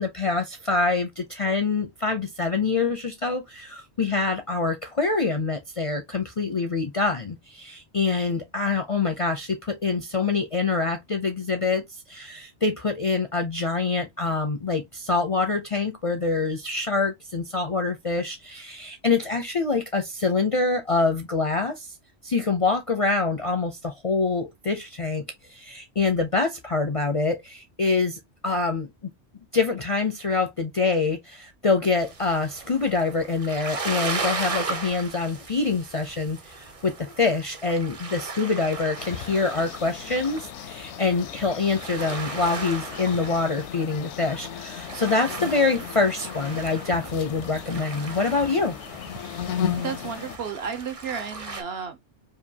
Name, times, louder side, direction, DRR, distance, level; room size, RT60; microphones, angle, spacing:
voice 1, 0.0-21.9 22.2-25.2 25.5-28.9 29.5-48.7, left 4 dB, 45° left, 0.5 m, -25 dB
sound 1, 32.0-51.6, right 3 dB, 35° right, 0.7 m, -37 dB
sound 2, 39.0-50.4, left 9 dB, 80° left, 0.9 m, -36 dB
voice 2, 49.5-52.1, right 6 dB, 65° right, 1.0 m, -33 dB
4.9 x 2.5 x 2.7 m
omnidirectional pair, 1.2 m